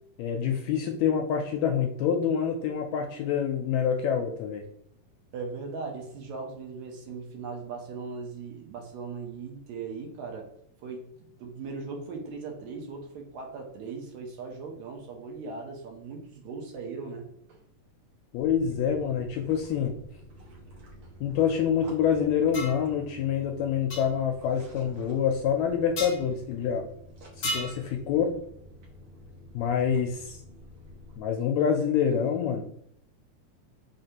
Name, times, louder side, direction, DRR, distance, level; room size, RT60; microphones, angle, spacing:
voice 1, 0.2-4.6 18.3-20.0 21.2-26.9 27.4-28.4 29.5-30.4 31.2-32.7, left 7 dB, 80° left, 2 dB, 1.6 m, -26 dB
voice 2, 5.3-10.5 10.8-11.0 11.4-17.2 17.5-17.6, right 4 dB, 75° right, 2 dB, 2.0 m, -38 dB
sound 1, 18.4-31.2, right 1 dB, 60° right, 1.6 m, -49 dB
sound 2, 22.5-22.8 23.9-24.0 26.0-26.2 27.4-27.8, left 1 dB, 65° left, 1.2 m, -32 dB
5.1 x 3.3 x 2.8 m, 0.72 s
omnidirectional pair, 3.5 m